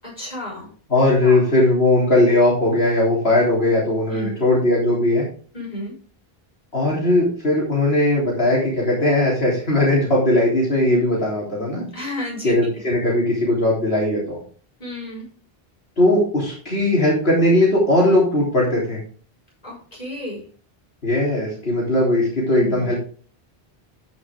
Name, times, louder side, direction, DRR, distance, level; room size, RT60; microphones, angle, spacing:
voice 1, 0.0-0.7 1.2-1.4 4.1-4.4 5.5-5.9 11.9-12.5 14.8-15.3 19.6-20.4 22.5-23.0, left 1 dB, 40° left, -4 dB, 6.1 m, -32 dB
voice 2, 0.9-5.3 6.7-11.9 12.4-14.4 16.0-19.0 21.0-22.9, left 1 dB, 75° left, -4 dB, 3.7 m, -18 dB
13.5 x 6.2 x 3.6 m, 0.42 s
omnidirectional pair, 1.0 m